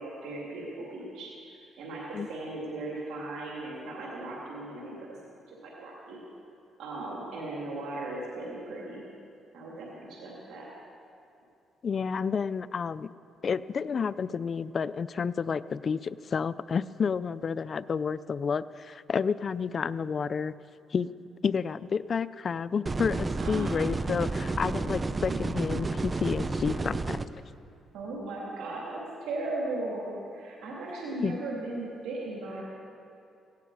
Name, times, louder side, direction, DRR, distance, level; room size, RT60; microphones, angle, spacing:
voice 1, 0.0-5.1 5.5-6.2 6.8-9.0 9.5-10.7 23.4-23.8 25.3-25.4 25.7-25.8 27.9-32.6, right 2 dB, 85° right, -4 dB, 2.7 m, -37 dB
voice 2, 11.8-13.1 13.4-20.5 20.9-21.1 21.4-27.2 31.2-31.4, left 6 dB, 45° left, 16 dB, 0.4 m, -30 dB
sound 1, 22.9-27.3, right 3 dB, 25° right, 0.6 m, -31 dB
17.0 x 16.5 x 4.8 m, 2.6 s
cardioid pair, 90°, 0 cm